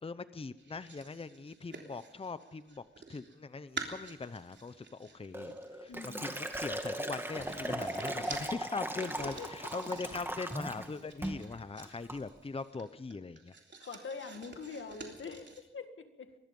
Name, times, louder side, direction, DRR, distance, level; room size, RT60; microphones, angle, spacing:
voice 1, 0.0-2.8 3.1-5.9 6.2-13.5, left 4 dB, 30° left, 13 dB, 0.7 m, -41 dB
sound 1, 0.6-3.3 3.7-15.6, right 4 dB, 65° right, 3.4 m, -49 dB
Crackle, 4.4-5.6 6.1-6.7 7.4-7.8 8.2-8.6 8.9-10.9 11.1-11.3, left 2 dB, 45° left, 3.8 m, -55 dB
Liquid, 5.3-10.9 11.2-11.5 11.8-12.2, right 1 dB, 10° right, 2.2 m, -38 dB
voice 2, 5.9-6.4 8.4-8.5 9.2-9.5 13.8-16.3, left 5 dB, 85° left, 7 dB, 2.0 m, -44 dB
24.5 x 20.5 x 5.4 m, 0.93 s
wide cardioid pair, 115°, 20 cm